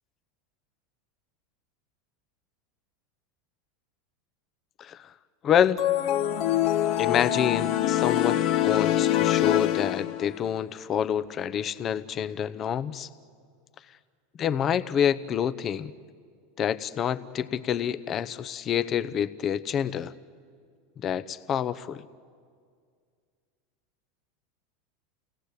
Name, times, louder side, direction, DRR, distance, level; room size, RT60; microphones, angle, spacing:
voice 1, 5.4-5.8 7.0-13.1 14.4-15.9 16.6-20.1 21.0-22.1, left 9 dB, 35° left, 14 dB, 0.9 m, -27 dB
sound 1, 5.8-10.4, left 12 dB, 55° left, 1.1 m, -24 dB
30.0 x 18.0 x 8.4 m, 2.1 s
hypercardioid pair, 95°, 0 cm